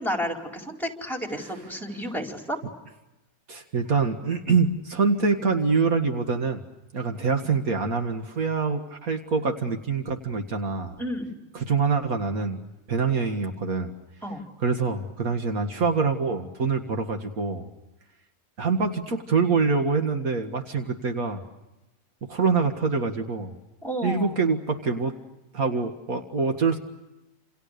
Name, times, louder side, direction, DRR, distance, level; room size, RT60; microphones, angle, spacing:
voice 1, 0.0-2.6 11.0-11.4 14.2-14.4 23.8-24.4, equal, ahead, 3 dB, 4.6 m, -31 dB
voice 2, 3.5-6.6 6.9-11.0 11.5-12.6 12.9-13.9 14.6-17.7 18.6-21.4 22.3-23.5 24.0-25.1 25.5-26.8, right 4 dB, 80° right, 5 dB, 2.3 m, -25 dB
29.0 x 28.5 x 6.8 m, 0.99 s
omnidirectional pair, 1.5 m